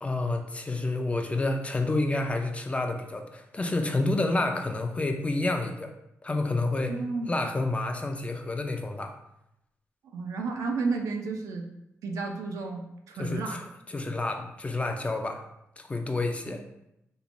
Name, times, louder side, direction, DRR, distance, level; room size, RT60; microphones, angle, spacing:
voice 1, 0.0-5.9 6.2-6.9 7.3-9.1 13.2-13.6 13.9-15.4 15.8-16.6, left 2 dB, 25° left, 5 dB, 0.3 m, -29 dB
voice 2, 6.9-7.3 10.0-11.7 12.0-13.6 16.5-16.6, right 4 dB, 85° right, 3 dB, 0.4 m, -32 dB
3.0 x 2.1 x 2.5 m, 0.83 s
cardioid pair, 75°, 5 cm